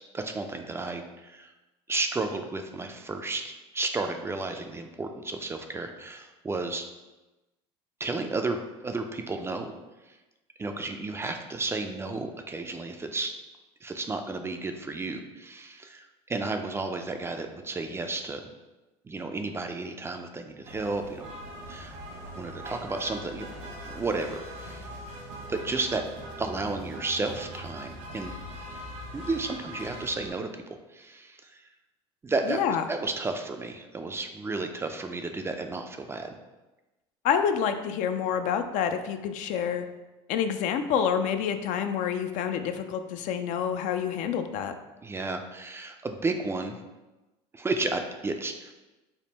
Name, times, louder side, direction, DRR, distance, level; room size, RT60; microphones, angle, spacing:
voice 1, 0.1-1.5 1.9-6.8 8.0-9.8 10.1-10.2 10.6-13.3 13.8-18.5 19.0-21.3 21.7-22.0 22.4-23.5 23.8-24.9 25.5-26.0 26.4-28.3 29.1-31.6 32.2-36.4 45.0-46.8 47.5-48.7, right 3 dB, 15° right, 5 dB, 0.3 m, -32 dB
sound 1, 20.6-30.3, equal, 70° right, 1.1 m, -41 dB
voice 2, 32.5-32.8 37.2-39.8 40.3-44.7, left 8 dB, 60° left, 8 dB, 0.4 m, -28 dB
3.5 x 2.2 x 3.9 m, 1.1 s
supercardioid pair, 90°, 15 cm